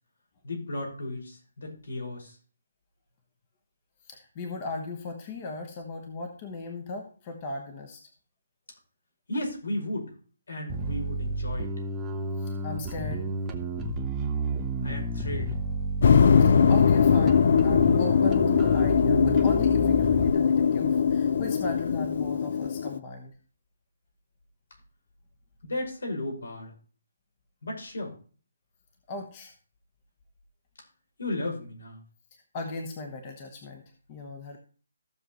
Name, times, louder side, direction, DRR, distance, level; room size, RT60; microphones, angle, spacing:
voice 1, 0.4-2.4 9.3-10.1 10.5-11.7 14.8-15.5 25.6-26.7 27.6-28.1 31.2-32.0, left 1 dB, 75° left, 2 dB, 5.3 m, -34 dB
voice 2, 4.0-8.0 12.4-13.3 16.4-23.3 29.1-29.5 32.5-33.8 34.1-34.6, left 3 dB, 20° left, 3 dB, 1.0 m, -37 dB
Bass guitar, 10.7-20.3, right 1 dB, 10° right, 0.7 m, -31 dB
sound 1, 16.0-23.0, left 6 dB, 40° left, 0.5 m, -21 dB
15.0 x 6.7 x 3.1 m, 0.39 s
hypercardioid pair, 175°, 0 cm